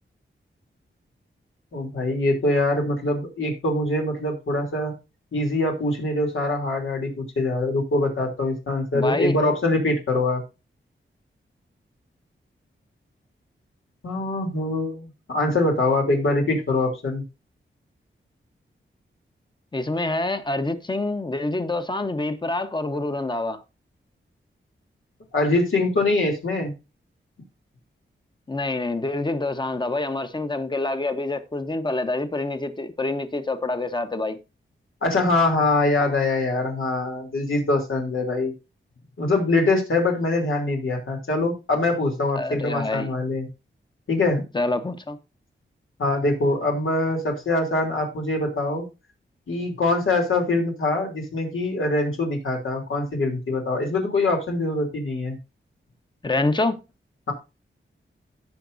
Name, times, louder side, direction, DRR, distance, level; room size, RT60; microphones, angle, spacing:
voice 1, 1.7-4.9 5.3-10.4 14.0-17.2 25.3-26.7 35.0-38.5 39.2-43.5 44.1-44.4 46.0-48.9 49.5-55.4, left 2 dB, 80° left, 3.2 m, -23 dB
voice 2, 8.9-9.4 19.7-23.6 28.5-34.4 42.4-43.1 44.5-45.2 56.2-56.8, left 2 dB, 20° left, 1.1 m, -26 dB
16.5 x 6.0 x 2.7 m
wide cardioid pair, 140°, 20 cm